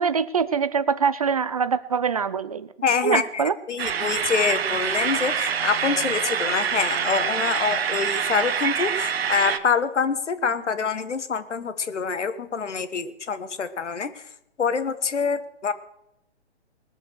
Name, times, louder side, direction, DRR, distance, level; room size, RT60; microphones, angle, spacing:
voice 1, 0.0-2.7 3.0-3.5, right 6 dB, 35° right, 15 dB, 0.5 m, -23 dB
voice 2, 2.8-14.1 14.6-15.7, left 5 dB, 80° left, 11 dB, 1.6 m, -26 dB
sound 1, 3.8-9.6, right 7 dB, 60° right, 1.1 m, -26 dB
20.5 x 7.1 x 6.4 m, 0.79 s
hypercardioid pair, 155°, 35 cm